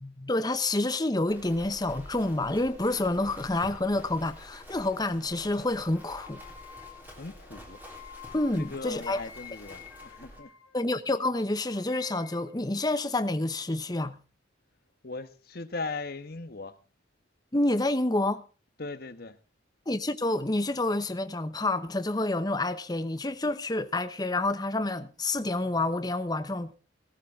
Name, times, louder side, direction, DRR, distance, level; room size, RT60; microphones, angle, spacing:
voice 1, 0.0-6.4 8.3-9.2 10.7-14.2 17.5-18.4 19.9-26.7, left 2 dB, 20° left, 0.9 m, -28 dB
Livestock farm animals working animals, 1.3-10.4, equal, 10° right, 3.8 m, -48 dB
sound 1, 5.9-11.2 11.5-12.6, left 7 dB, 90° left, 1.9 m, -49 dB
voice 2, 7.2-7.8 8.6-10.5 15.0-16.7 18.8-19.4, left 3 dB, 50° left, 1.3 m, -38 dB
18.0 x 14.0 x 3.7 m
head